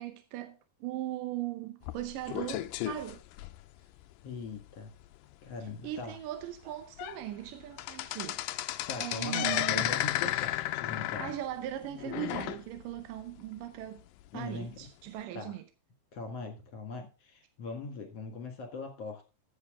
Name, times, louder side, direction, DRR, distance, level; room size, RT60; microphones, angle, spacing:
voice 1, 0.0-3.2 5.8-8.7 9.0-10.0 10.3-10.5 11.2-14.0 14.3-15.6, right 13 dB, 75° right, 2.2 m, -39 dB
sound 1, 1.8-4.0 4.5-4.7 5.0-5.1 5.7-5.8 6.4-6.5 6.8-7.2 7.5-13.0 13.4-13.5 14.3-14.4, left 15 dB, 80° left, 2.0 m, -33 dB
voice 2, 4.2-4.9 5.4-6.2 8.9-11.3 14.3-14.9 15.3-15.5 16.1-19.3, left 4 dB, 50° left, 2.5 m, -41 dB
14.5 x 7.7 x 3.7 m
omnidirectional pair, 4.5 m